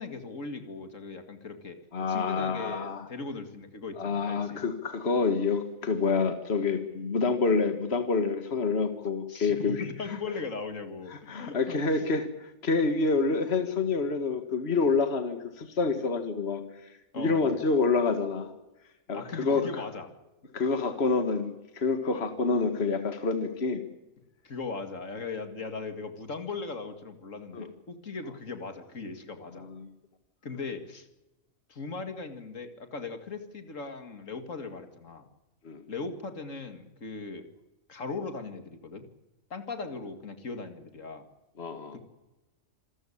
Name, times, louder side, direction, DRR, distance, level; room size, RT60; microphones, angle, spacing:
voice 1, 0.0-1.8 2.1-4.6 9.3-11.8 17.1-17.5 19.1-20.1 22.1-22.3 24.4-29.7 30.4-31.1 31.7-35.3 35.9-37.5 37.9-39.1 39.5-41.2 41.9-42.0, left 4 dB, 70° left, 8 dB, 2.5 m, -38 dB
voice 2, 1.9-3.0 4.0-10.2 11.1-18.5 19.1-19.7 20.5-23.8 27.5-27.7 29.5-29.9 35.6-35.8 41.6-42.0, left 4 dB, 50° left, 8 dB, 2.0 m, -28 dB
27.0 x 14.5 x 10.0 m, 1.0 s
omnidirectional pair, 1.4 m